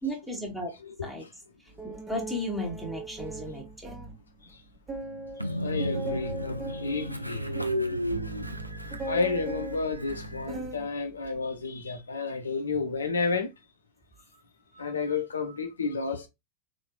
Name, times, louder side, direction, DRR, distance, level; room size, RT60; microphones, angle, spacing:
voice 1, 0.0-0.7 1.0-1.3 1.8-3.9, equal, ahead, 1.4 m, -34 dB
sound 1, 1.8-4.2 4.5-4.6 4.9-10.9 11.2-11.7, right 2 dB, 20° right, 1.1 m, -39 dB
Train, 5.4-10.7, equal, 90° right, 0.4 m, -34 dB
voice 2, 5.6-7.5 9.1-13.5 14.7-16.3, left 4 dB, 70° left, 0.6 m, -31 dB
3.9 x 3.1 x 2.4 m
figure-of-eight pair, 90°, 0 cm